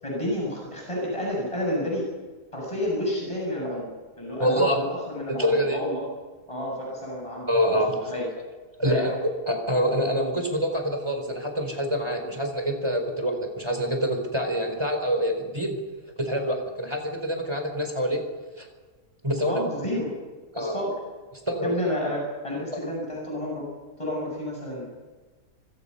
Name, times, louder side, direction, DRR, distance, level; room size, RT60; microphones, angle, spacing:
voice 1, 0.0-2.1 2.5-6.0 6.5-7.5 8.1-8.3 8.8-9.1 12.2-12.3 19.5-20.1 20.6-20.9 21.6-23.7 24.0-24.9, left 1 dB, 20° left, -2 dB, 7.8 m, -30 dB
voice 2, 4.4-4.8 5.3-5.8 7.5-8.1 8.8-15.8 16.2-18.2 18.6-18.7 19.2-19.6 20.5-20.8 21.5-21.7 22.7-22.9, equal, 15° right, 4 dB, 4.4 m, -26 dB
25.5 x 24.5 x 5.7 m, 1.3 s
omnidirectional pair, 1.7 m